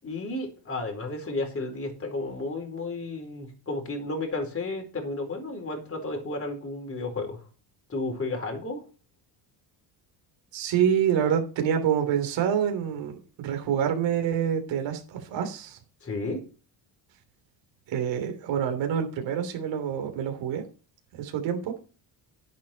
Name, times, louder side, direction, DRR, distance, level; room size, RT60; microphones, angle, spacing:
voice 1, 0.0-7.4 7.9-8.8 16.0-16.4, left 2 dB, 30° left, 2 dB, 4.3 m, -32 dB
voice 2, 10.5-15.8 17.9-20.6 21.2-21.7, right 8 dB, 70° right, 5 dB, 3.2 m, -27 dB
10.5 x 8.4 x 4.5 m, 0.35 s
cardioid pair, 120°, 46 cm